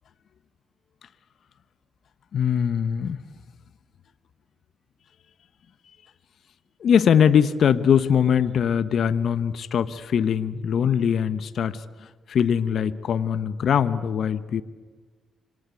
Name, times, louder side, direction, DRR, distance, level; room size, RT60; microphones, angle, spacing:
voice 1, 2.3-3.2 6.8-14.6, left 8 dB, 65° left, 13 dB, 1.2 m, -22 dB
26.5 x 26.5 x 8.5 m, 1.4 s
hypercardioid pair, 45°, 0 cm